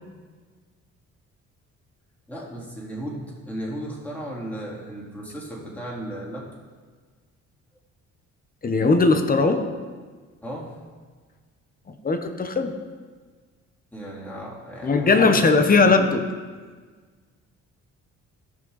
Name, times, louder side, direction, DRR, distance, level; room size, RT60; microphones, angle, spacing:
voice 1, 2.3-6.4 10.4-10.8 13.9-15.9, right 1 dB, 5° left, -5 dB, 3.6 m, -35 dB
voice 2, 8.6-9.7 12.0-12.7 14.8-16.3, left 3 dB, 30° left, 7 dB, 1.1 m, -19 dB
17.0 x 6.5 x 4.1 m, 1.5 s
cardioid pair, 90°, 30 cm